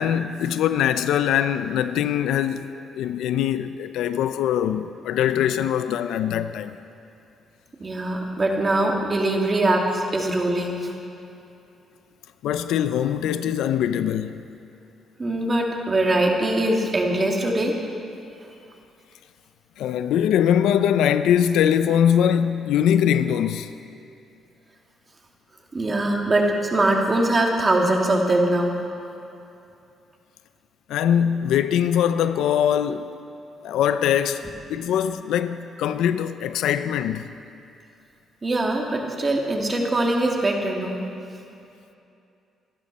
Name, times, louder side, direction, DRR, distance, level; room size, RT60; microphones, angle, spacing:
voice 1, 0.0-6.8 12.4-14.4 19.8-23.7 30.9-33.1 33.6-34.4 34.7-37.3, left 9 dB, 85° left, 0.6 m, -22 dB
voice 2, 7.8-10.9 15.2-17.8 25.7-28.8 38.4-41.0, right 1 dB, 30° right, 2.3 m, -22 dB
25.0 x 11.5 x 4.2 m
cardioid pair, 90°, 0 cm